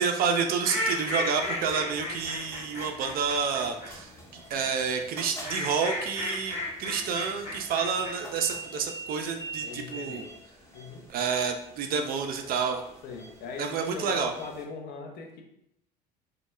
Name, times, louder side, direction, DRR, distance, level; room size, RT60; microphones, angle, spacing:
voice 1, 0.0-10.2 11.1-12.8 13.6-14.3, right 6 dB, 45° right, 5 dB, 0.4 m, -29 dB
sound 1, 0.6-3.9 5.1-8.1, left 1 dB, 35° left, 1.1 m, -33 dB
sound 2, 0.9-14.6, right 2 dB, 15° left, 0.8 m, -45 dB
voice 2, 9.6-10.3 10.7-11.1 13.0-15.4, left 4 dB, 50° left, 2 dB, 0.6 m, -39 dB
2.2 x 2.0 x 3.0 m, 0.75 s
hypercardioid pair, 65°, 21 cm